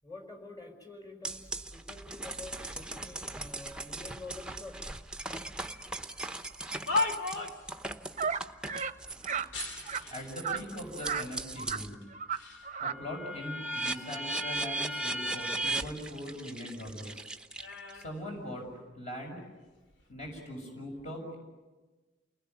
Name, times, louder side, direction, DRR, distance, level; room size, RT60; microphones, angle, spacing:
voice 1, 0.0-4.8, left 2 dB, 20° left, 3 dB, 4.9 m, -47 dB
sound 1, 1.2-11.9 12.4-18.0, right 2 dB, 5° right, 0.9 m, -38 dB
sound 2, 6.4-7.7 9.5-10.4 11.2-11.3 12.0-12.7 13.1-14.6 14.9-16.6 16.9-19.0 19.7-20.0, left 3 dB, 75° left, 2.5 m, -38 dB
sound 3, 8.2-8.4 8.7-8.9 9.2-9.5 9.8-10.0 10.4-10.6 11.0-11.3 11.6-11.8 12.1-12.4 12.6-13.0, right 6 dB, 40° right, 0.8 m, -33 dB
voice 2, 10.1-12.1 12.8-17.2 17.9-18.7 18.9-19.4 20.1-21.4, equal, 40° left, 1 dB, 6.9 m, -41 dB
29.5 x 20.0 x 9.6 m, 1.2 s
head